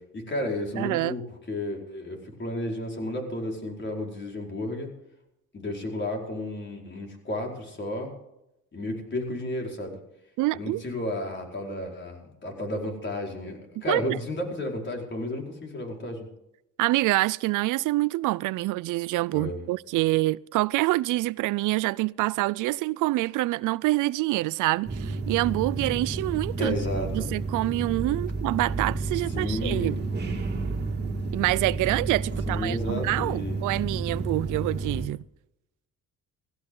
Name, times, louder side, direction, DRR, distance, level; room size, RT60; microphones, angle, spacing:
voice 1, 0.1-4.9 5.5-8.1 8.7-10.0 10.5-16.3 19.3-19.6 26.6-27.3 29.3-30.0 32.5-33.7, left 1 dB, 40° left, 4.8 m, -32 dB
voice 2, 0.8-1.2 10.4-10.8 13.9-14.2 16.8-26.7 27.1-30.0 31.3-35.2, right 19 dB, 85° right, 0.5 m, -26 dB
sound 1, 24.8-35.1, right 3 dB, 35° right, 2.3 m, -31 dB
16.5 x 16.0 x 3.9 m
cardioid pair, 90°, 30 cm